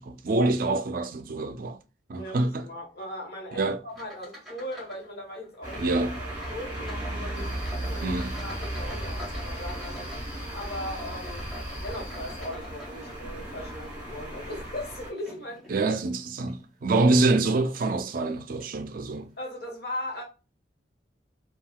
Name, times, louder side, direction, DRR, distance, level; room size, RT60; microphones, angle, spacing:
voice 1, 0.0-1.8 2.1-2.7 3.5-3.8 5.8-6.2 8.0-8.3 15.7-19.3, right 2 dB, 50° right, 0.4 m, -26 dB
voice 2, 2.2-6.0 6.5-8.1 8.4-10.1 10.5-11.5 11.8-15.6 19.4-20.2, left 1 dB, 60° left, 1.1 m, -38 dB
sound 1, 3.9-5.1 5.3-5.9 6.4-13.4 14.0-15.8 16.4-16.6 17.2-17.3 18.2-18.3 18.6-18.8, equal, ahead, 1.3 m, -47 dB
sound 2, 5.6-15.1, right 1 dB, 20° right, 1.5 m, -36 dB
sound 3, 7.3-12.5, equal, 20° left, 0.9 m, -40 dB
3.6 x 2.3 x 2.2 m
head